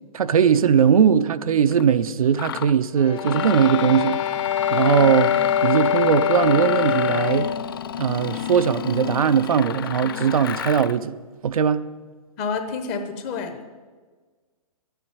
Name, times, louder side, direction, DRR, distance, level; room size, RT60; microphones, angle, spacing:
voice 1, 0.1-4.2 4.7-5.3 5.6-7.5 8.0-11.1 11.4-11.8, right 7 dB, 65° right, 11 dB, 0.7 m, -19 dB
Mechanisms, 1.7-1.8 2.3-2.7 3.2-11.0, left 10 dB, 35° left, 0.4 m, -30 dB
sound 1, 3.0-7.7, left 8 dB, 55° left, 1.5 m, -23 dB
voice 2, 12.4-13.7, left 5 dB, 20° left, 7 dB, 0.9 m, -29 dB
11.0 x 9.2 x 9.4 m, 1.4 s
hypercardioid pair, 165°, 19 cm